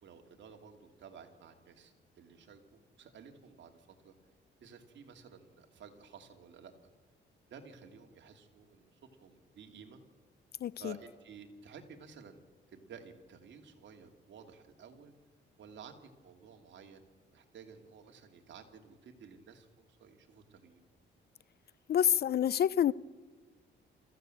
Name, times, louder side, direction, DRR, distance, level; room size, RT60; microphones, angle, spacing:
voice 1, 0.0-4.1 4.6-6.7 7.5-10.0 10.8-12.4 12.7-15.1 15.6-20.8, right 6 dB, 65° right, 4 dB, 2.8 m, -54 dB
voice 2, 10.6-11.0 21.9-22.9, left 10 dB, 55° left, 21 dB, 0.5 m, -27 dB
25.5 x 15.0 x 7.8 m, 1.4 s
cardioid pair, 90°, 20 cm